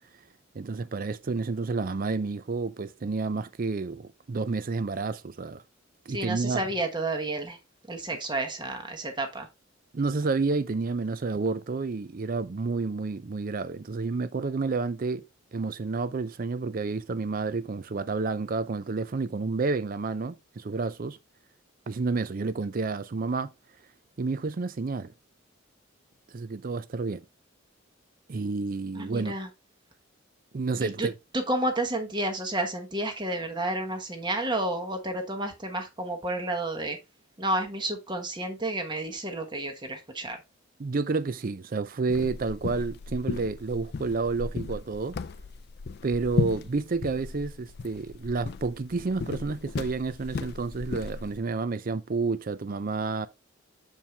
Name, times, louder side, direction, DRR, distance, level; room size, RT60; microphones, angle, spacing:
voice 1, 0.5-5.6 6.1-6.6 9.9-15.2 15.5-21.2 21.9-23.5 24.2-25.1 26.3-27.2 28.3-29.3 30.5-31.1 40.8-45.2 46.0-53.3, right 4 dB, 45° right, 0.5 m, -30 dB
voice 2, 6.1-7.6 7.9-9.5 28.9-29.5 30.8-31.1 31.3-37.0 37.4-40.4, right 1 dB, 20° right, 1.2 m, -31 dB
sound 1, 42.1-51.4, left 4 dB, 50° left, 0.4 m, -35 dB
7.2 x 4.6 x 3.3 m
head